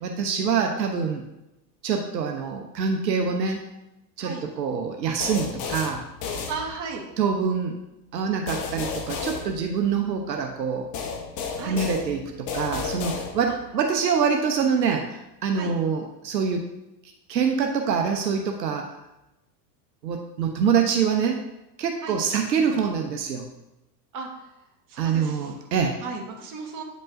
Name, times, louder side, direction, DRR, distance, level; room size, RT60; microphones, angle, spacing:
voice 1, 0.0-1.2 1.8-3.7 4.2-6.0 7.2-7.8 8.1-10.9 11.6-16.7 17.3-18.9 20.0-21.4 21.8-23.5 25.0-26.0, right 6 dB, 90° right, 4 dB, 0.9 m, -25 dB
sound 1, 5.2-7.1 8.5-10.2 10.9-13.7, left 5 dB, 35° left, 1.0 m, -33 dB
voice 2, 6.5-7.0 11.6-11.8 13.5-13.6 15.5-15.7 22.0-22.2 24.1-24.3 24.9-25.5 26.0-26.8, right 4 dB, 40° right, 1 dB, 1.6 m, -35 dB
8.6 x 5.3 x 2.6 m, 0.92 s
hypercardioid pair, 100°, 49 cm